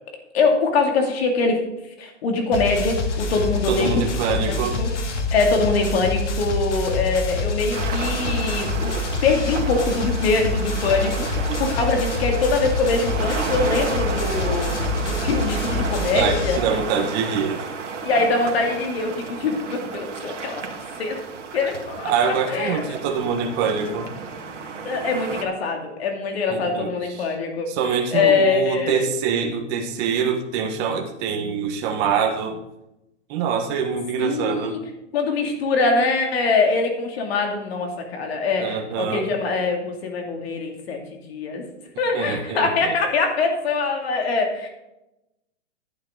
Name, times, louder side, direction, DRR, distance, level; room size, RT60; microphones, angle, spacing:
voice 1, 0.3-1.6 2.0-3.9 4.3-4.9 5.3-8.9 9.2-14.8 15.0-16.8 18.0-20.6 21.0-21.2 21.5-22.8 24.8-29.1 34.2-34.8 35.1-41.0 41.3-41.7 42.0-44.7, left 4 dB, 55° left, 3 dB, 2.6 m, -23 dB
sound 1, 2.5-16.6, left 3 dB, 75° left, 2.1 m, -26 dB
voice 2, 3.7-4.8 11.0-11.1 11.5-11.6 16.1-17.7 22.0-24.1 26.5-26.9 27.2-27.3 27.7-32.6 33.3-34.8 38.6-39.2 42.1-42.9, right 6 dB, 30° right, 3 dB, 1.2 m, -24 dB
sound 2, 7.7-25.4, right 5 dB, 80° right, 1.9 m, -32 dB
11.5 x 8.8 x 3.9 m, 0.91 s
hypercardioid pair, 145°, 36 cm